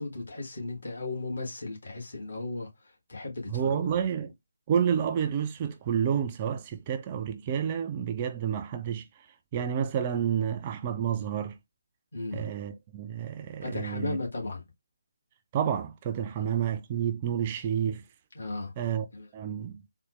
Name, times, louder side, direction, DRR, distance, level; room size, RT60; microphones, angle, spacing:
voice 1, 0.0-2.7 3.1-4.0 12.1-12.5 13.6-14.6 18.3-18.7 19.1-19.3, left 2 dB, 55° left, 1.4 m, -35 dB
voice 2, 3.5-4.3 4.7-9.1 9.5-11.5 12.3-14.2 15.5-18.0 18.8-19.1 19.3-19.8, right 8 dB, 25° right, 0.3 m, -29 dB
4.0 x 2.1 x 2.9 m
figure-of-eight pair, 150°, 0 cm